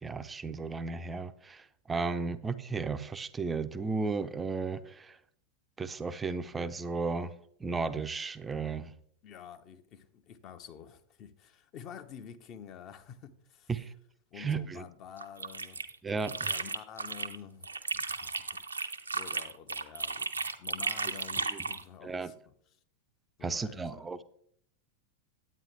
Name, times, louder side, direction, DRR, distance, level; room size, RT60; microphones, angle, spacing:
voice 1, 0.0-5.2 5.8-7.3 7.6-8.9 13.7-13.9 14.4-14.8 16.0-16.5 21.5-21.6 22.0-22.3 23.4-24.2, right 4 dB, 15° right, 0.5 m, -34 dB
voice 2, 9.2-13.7 14.3-15.9 16.3-22.3 23.4-24.0, left 8 dB, 35° left, 0.8 m, -49 dB
sound 1, 15.2-17.4 17.6-21.8, right 4 dB, 80° right, 0.7 m, -35 dB
9.7 x 8.9 x 3.3 m
figure-of-eight pair, 90°, 0 cm